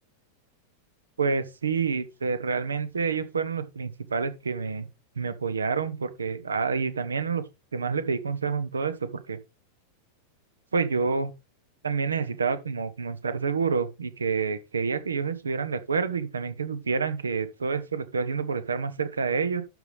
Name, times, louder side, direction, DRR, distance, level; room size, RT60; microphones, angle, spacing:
voice 1, 1.2-4.9 5.2-7.4 7.7-9.4 10.7-11.3 11.8-19.6, right 5 dB, 75° right, 0.9 m, -28 dB
12.0 x 5.4 x 3.4 m
figure-of-eight pair, 90°, 0 cm